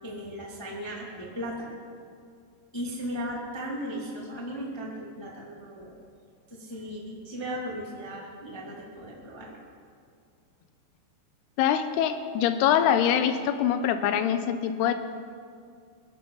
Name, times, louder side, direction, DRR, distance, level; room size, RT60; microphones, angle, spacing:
voice 1, 0.0-1.8 2.7-6.0 6.5-9.6, equal, 25° left, -4 dB, 0.6 m, -36 dB
voice 2, 11.6-14.9, left 9 dB, 80° left, 9 dB, 2.5 m, -24 dB
22.5 x 13.0 x 4.0 m, 2.3 s
omnidirectional pair, 5.1 m